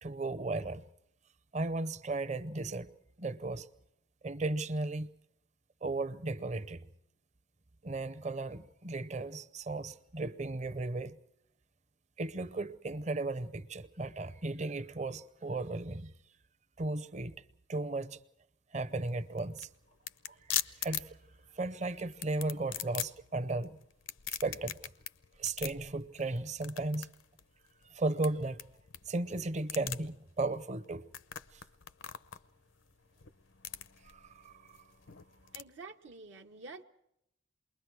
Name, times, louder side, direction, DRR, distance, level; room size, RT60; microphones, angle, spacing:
voice 1, 0.0-0.8 1.5-2.9 3.2-3.7 4.2-5.1 5.8-6.8 7.8-11.2 12.2-16.1 16.8-17.4 17.7-18.2 18.7-19.7 20.3-20.4 20.6-21.2 21.5-23.8 24.4-24.8 25.4-27.1 27.8-28.6 29.1-31.1 31.5-31.6 34.1-34.8, right 2 dB, 35° right, 0.7 m, -35 dB
sound 1, 18.9-35.6, left 11 dB, 90° left, 0.7 m, -42 dB
voice 2, 35.5-36.8, right 3 dB, 75° right, 1.0 m, -49 dB
28.5 x 22.0 x 4.7 m
head